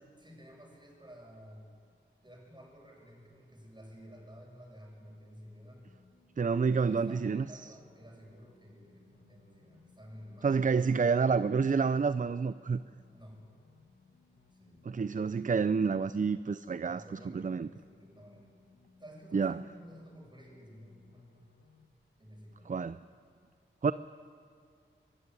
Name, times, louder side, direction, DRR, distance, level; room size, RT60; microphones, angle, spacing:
voice 1, 0.2-1.7 2.2-5.9 6.7-11.1 13.1-13.4 14.5-14.9 16.8-18.5 19.0-21.5 22.2-22.7, equal, 20° right, 0 dB, 7.7 m, -53 dB
sound 1, 5.9-21.9, left 5 dB, 85° left, 2.2 m, -64 dB
voice 2, 6.4-7.5 10.4-12.8 14.9-17.0 17.3-17.7 19.3-19.6 22.7-23.0 23.8-23.9, right 5 dB, 40° right, 14 dB, 0.5 m, -28 dB
24.5 x 14.5 x 9.8 m, 2.3 s
cardioid pair, 55°, 21 cm